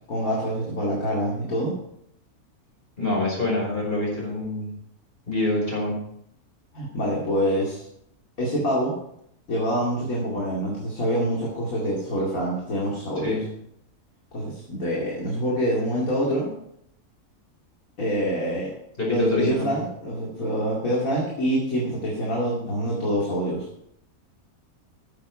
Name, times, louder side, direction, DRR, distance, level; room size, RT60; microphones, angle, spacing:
voice 1, 0.1-1.8 6.7-7.8 8.4-8.9 9.5-13.4 14.3-16.5 18.0-18.7 19.1-23.7, equal, 60° left, -4 dB, 2.8 m, -26 dB
voice 2, 3.0-4.7 5.3-6.0 13.2-13.4 19.0-19.7, left 2 dB, 35° left, -4 dB, 5.5 m, -26 dB
13.0 x 7.3 x 4.8 m, 0.74 s
omnidirectional pair, 1.6 m